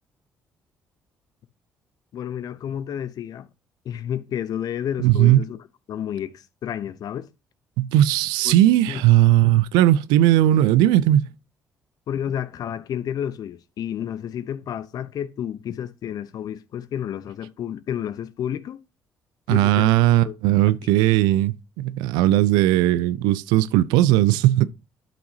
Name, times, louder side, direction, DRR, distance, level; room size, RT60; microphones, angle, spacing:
voice 1, 2.1-3.5 3.8-5.6 5.9-7.3 8.4-8.6 8.9-9.0 12.1-18.8 19.5-19.9 20.2-20.3 20.7-20.8, left 9 dB, 60° left, 0.8 m, -30 dB
voice 2, 5.0-5.5 7.8-11.3 19.5-24.7, right 14 dB, 75° right, 0.5 m, -18 dB
11.5 x 5.9 x 2.8 m
hypercardioid pair, 50°, 7 cm